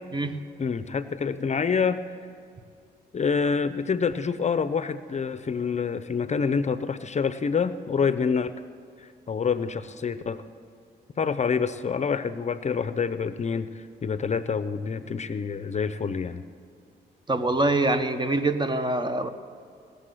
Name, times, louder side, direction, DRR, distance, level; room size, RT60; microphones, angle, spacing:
voice 1, 0.6-2.0 3.1-8.5 9.0-10.5 11.2-16.4, left 5 dB, 40° left, 13 dB, 0.6 m, -27 dB
voice 2, 17.3-19.3, right 2 dB, 25° right, 10 dB, 0.9 m, -24 dB
18.5 x 6.8 x 7.6 m, 2.5 s
cardioid pair, 75°, 18 cm